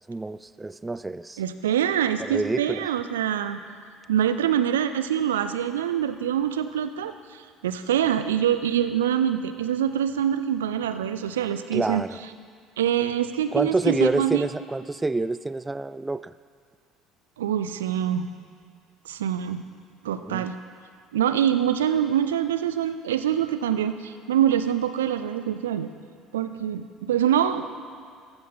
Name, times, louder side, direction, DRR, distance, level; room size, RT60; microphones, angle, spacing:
voice 1, 0.1-1.4 2.2-2.9 11.7-12.2 13.5-16.3 20.3-20.5, right 2 dB, 15° right, 16 dB, 0.3 m, -27 dB
voice 2, 1.4-3.6 4.1-7.1 7.6-12.0 12.8-14.4 17.4-18.3 19.1-19.6 20.0-20.5 21.1-25.9 26.3-27.7, right 10 dB, 70° right, 10 dB, 0.5 m, -25 dB
15.0 x 7.1 x 5.6 m, 2.2 s
figure-of-eight pair, 60°, 0 cm